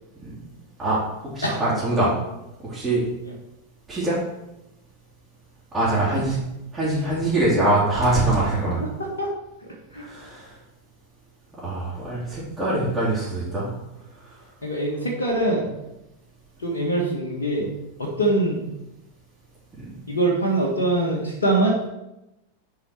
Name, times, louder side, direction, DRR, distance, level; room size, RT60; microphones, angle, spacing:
voice 1, 0.8-2.1 2.6-3.0 3.9-4.2 5.7-6.4 6.7-8.8 9.9-10.5 11.6-13.7 14.2-14.4 19.8-19.9, right 2 dB, 10° right, -10 dB, 3.3 m, -23 dB
voice 2, 9.6-10.1 14.6-15.7 16.6-17.7 18.0-18.6 20.1-21.8, right 1 dB, 70° left, -1 dB, 1.5 m, -23 dB
6.8 x 4.9 x 5.9 m, 0.92 s
figure-of-eight pair, 90°, 0 cm